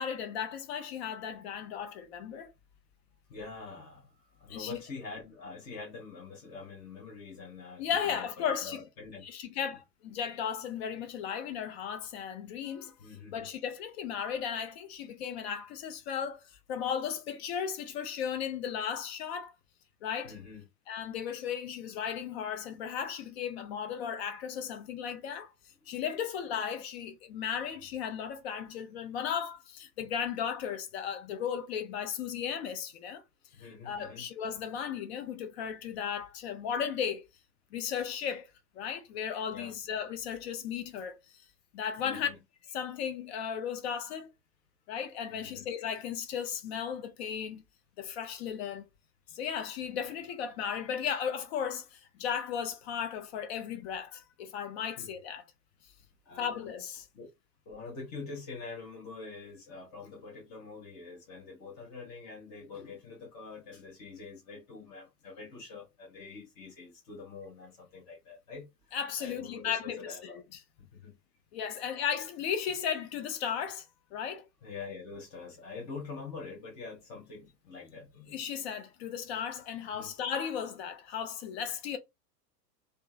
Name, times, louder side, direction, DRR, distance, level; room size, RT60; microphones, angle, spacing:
voice 1, 0.0-2.5 4.5-4.8 7.8-8.8 9.2-12.9 13.3-16.4 16.7-19.5 20.0-20.3 20.9-25.5 25.9-33.2 33.8-37.2 37.7-38.5 38.8-41.2 41.7-42.3 42.7-44.3 44.9-47.6 48.0-48.8 49.3-55.4 56.4-57.1 68.9-70.2 70.5-70.6 71.5-73.9 74.1-74.4 78.3-82.0, left 8 dB, 40° left, 0.6 m, -35 dB
voice 2, 3.3-9.2 13.0-13.5 20.2-20.6 33.5-34.2 39.5-39.8 42.0-42.4 45.3-45.7 55.0-55.1 56.3-56.6 57.1-57.3 57.7-70.4 70.8-71.2 74.6-78.4 79.9-80.1, left 4 dB, 10° left, 0.3 m, -45 dB
2.6 x 2.3 x 2.5 m
figure-of-eight pair, 95°, 48 cm